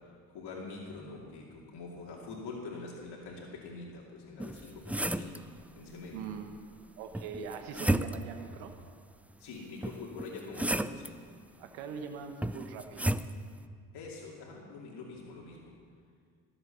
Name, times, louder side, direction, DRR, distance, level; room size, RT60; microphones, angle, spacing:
voice 1, 0.3-5.4 5.8-6.2 9.4-11.1 13.9-15.7, left 3 dB, 60° left, -3 dB, 2.7 m, -44 dB
sound 1, 4.4-5.4 7.1-8.4 9.8-11.1 12.4-13.3, right 1 dB, 5° right, 0.4 m, -32 dB
voice 2, 6.1-6.6 7.0-8.7 11.6-13.1, right 6 dB, 85° right, 6 dB, 1.2 m, -42 dB
20.0 x 7.9 x 6.9 m, 2.1 s
supercardioid pair, 65°, 44 cm